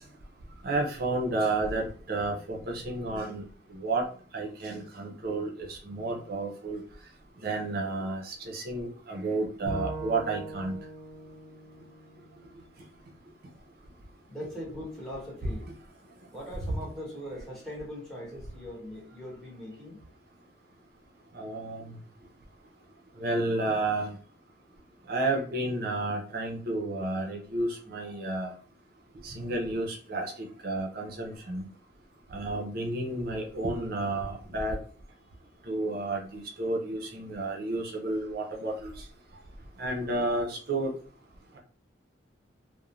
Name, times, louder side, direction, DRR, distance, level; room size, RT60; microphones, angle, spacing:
voice 1, 0.6-3.4 3.7-4.0 4.3-6.8 7.4-10.8 21.3-21.9 23.2-24.2 25.1-28.5 29.2-31.6 32.3-34.8 35.7-38.9 39.8-40.9, right 2 dB, 50° right, 1 dB, 0.5 m, -31 dB
Bowed string instrument, 9.7-12.9, right 2 dB, 25° right, 0.9 m, -41 dB
voice 2, 14.3-15.7 16.3-20.0, equal, ahead, -6 dB, 1.0 m, -40 dB
2.5 x 2.1 x 3.0 m, 0.42 s
head